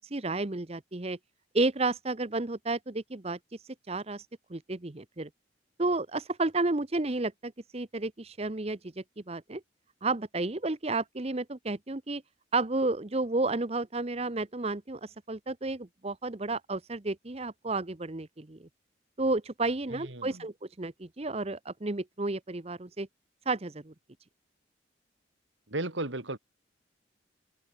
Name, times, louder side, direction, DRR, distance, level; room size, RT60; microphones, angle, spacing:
voice 1, 0.1-1.2 1.5-3.4 3.9-5.3 5.8-9.6 10.0-12.2 12.5-18.6 19.2-23.1 23.5-23.9, right 2 dB, 30° right, 0.9 m, -32 dB
voice 2, 19.9-20.4 25.7-26.4, right 2 dB, 75° right, 2.9 m, -35 dB
head